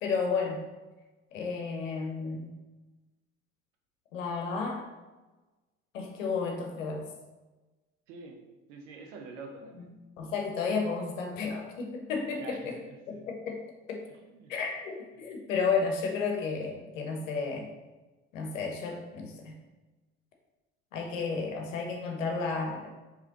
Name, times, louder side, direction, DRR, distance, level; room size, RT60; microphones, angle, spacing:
voice 1, 0.0-0.6 1.3-2.5 4.1-4.9 5.9-7.0 10.2-12.8 13.1-13.6 13.9-14.0 14.5-17.7 18.3-19.6 20.9-22.9, left 5 dB, 80° left, 2 dB, 0.8 m, -32 dB
voice 2, 8.1-8.4 8.7-9.9 12.3-13.3 14.1-14.5, right 3 dB, 75° right, 3 dB, 0.8 m, -46 dB
4.7 x 3.2 x 2.9 m, 1.2 s
figure-of-eight pair, 50°, 38 cm